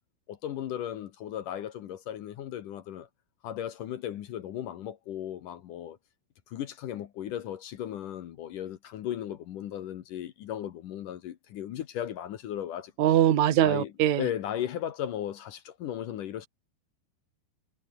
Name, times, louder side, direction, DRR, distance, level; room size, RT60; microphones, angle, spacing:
voice 1, 0.3-3.1 3.4-6.0 6.5-12.9 13.6-13.9 14.2-16.5, left 11 dB, 70° left, 2.1 m, -36 dB
voice 2, 13.0-14.2, right 11 dB, 55° right, 2.3 m, -22 dB
omnidirectional pair, 5.4 m